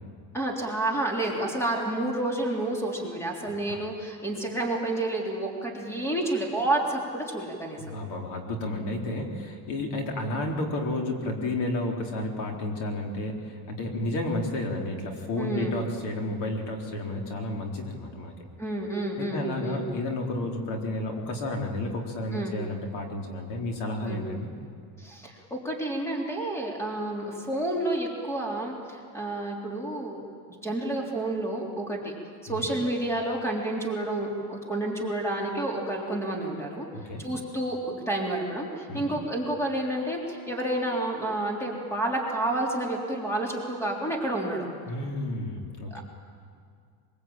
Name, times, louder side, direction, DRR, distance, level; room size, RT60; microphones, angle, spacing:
voice 1, 0.3-7.8 15.4-15.8 18.6-19.8 22.3-22.6 24.1-24.2 25.0-32.1 32.4-36.9 37.2-44.7 45.9-46.0, right 1 dB, 5° left, -1 dB, 3.5 m, -30 dB
voice 2, 7.8-18.3 19.2-24.5 32.5-32.7 36.9-37.2 38.9-39.1 44.9-46.0, left 1 dB, 50° left, 1 dB, 4.1 m, -31 dB
23.5 x 23.5 x 8.9 m, 2.2 s
supercardioid pair, 145°, 49 cm